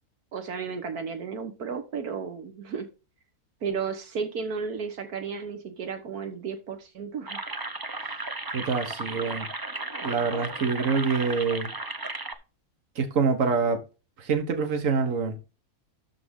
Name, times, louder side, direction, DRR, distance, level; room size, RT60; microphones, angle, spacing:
voice 1, 0.3-2.9 3.6-7.4, right 6 dB, 85° right, 1.8 m, -33 dB
sound 1, 7.3-12.3, right 2 dB, 25° right, 0.6 m, -35 dB
voice 2, 8.5-9.5 10.0-11.7 12.9-13.8 14.2-15.4, right 5 dB, 60° right, 1.8 m, -26 dB
12.5 x 4.8 x 3.8 m
omnidirectional pair, 1.6 m